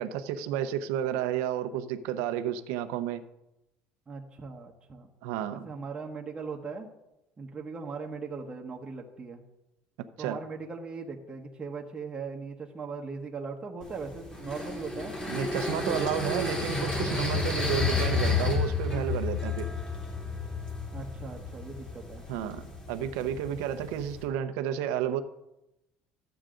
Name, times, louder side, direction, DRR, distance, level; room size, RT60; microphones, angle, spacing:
voice 1, 0.0-3.2 5.2-5.7 10.2-10.4 15.3-19.7 22.3-22.6 22.9-25.2, right 10 dB, 85° right, 9 dB, 0.8 m, -31 dB
voice 2, 4.1-5.1 5.5-6.9 7.4-9.4 10.2-15.1 15.5-16.4 20.9-22.3, right 4 dB, 20° right, -1 dB, 1.2 m, -39 dB
sound 1, 13.8-24.2, left 4 dB, 20° left, 3.0 m, -32 dB
13.5 x 8.0 x 3.8 m, 0.91 s
cardioid pair, 125°, 4 cm